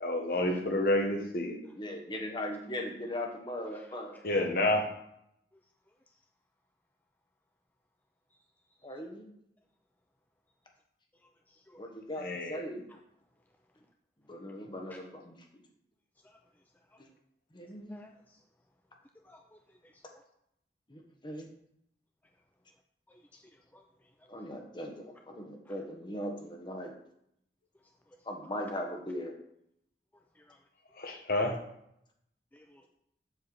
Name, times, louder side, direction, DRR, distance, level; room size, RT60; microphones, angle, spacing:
voice 1, 0.0-1.7 4.2-4.9 12.2-12.7 31.0-31.6, left 1 dB, 55° left, 3 dB, 1.2 m, -29 dB
voice 2, 1.7-4.2 8.8-9.3 11.8-12.8 14.3-15.4 17.0-17.1 17.5-18.0 20.9-21.5 24.3-26.9 28.2-29.3, left 1 dB, 25° left, 2 dB, 1.3 m, -39 dB
voice 3, 19.2-19.6 23.3-23.4 23.7-23.8 30.5-30.6 32.5-32.9, left 1 dB, 10° left, 3 dB, 0.4 m, -56 dB
7.7 x 4.5 x 7.0 m, 0.76 s
head